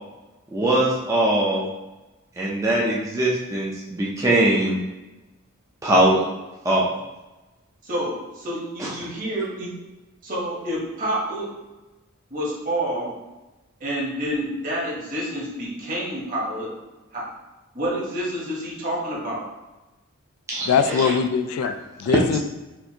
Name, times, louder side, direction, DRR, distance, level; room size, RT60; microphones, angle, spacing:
voice 1, 0.5-1.7 2.4-4.8 5.8-6.2 6.6-6.9 8.8-8.9 20.5-20.7, right 1 dB, 15° right, -5 dB, 0.4 m, -21 dB
voice 2, 7.8-9.7 10.2-11.5 12.3-13.2 13.8-16.7 17.1-17.3 17.7-19.5 20.8-21.1, right 1 dB, 40° right, -5 dB, 1.0 m, -28 dB
voice 3, 20.7-22.4, left 6 dB, 90° left, 14 dB, 0.3 m, -22 dB
4.3 x 2.5 x 2.7 m, 1.1 s
head